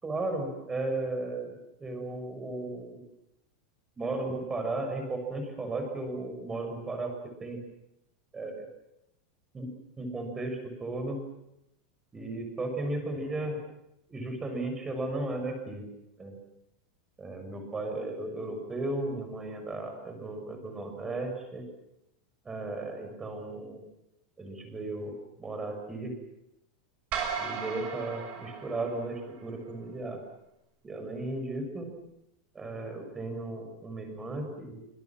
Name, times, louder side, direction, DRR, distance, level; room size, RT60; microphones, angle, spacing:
voice 1, 0.0-3.0 4.0-7.1 7.4-7.6 8.3-8.7 9.5-9.7 10.0-11.2 12.1-13.6 14.1-15.9 16.2-16.3 17.2-21.6 22.4-23.8 24.4-26.1 27.4-30.2 30.8-31.9 32.5-34.8, right 2 dB, 15° right, 5 dB, 6.7 m, -35 dB
sound 1, 27.1-29.5, right 6 dB, 35° right, 6.4 m, -36 dB
27.0 x 26.0 x 7.5 m, 0.85 s
supercardioid pair, 160°, 4 cm